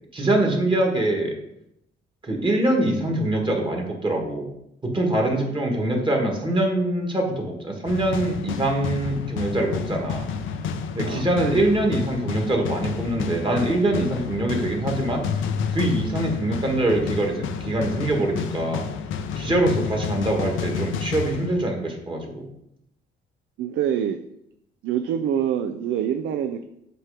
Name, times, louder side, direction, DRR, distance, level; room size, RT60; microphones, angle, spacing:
voice 1, 0.1-1.4 2.2-4.5 4.8-10.3 11.0-15.3 15.7-18.9 19.4-22.5, right 1 dB, 25° right, 1 dB, 1.8 m, -24 dB
sound 1, 7.9-22.0, left 6 dB, 80° left, 0.6 m, -30 dB
voice 2, 23.6-24.2 24.8-26.6, right 9 dB, 75° right, 8 dB, 0.5 m, -25 dB
7.7 x 3.0 x 5.0 m, 0.79 s
cardioid pair, 90°, 20 cm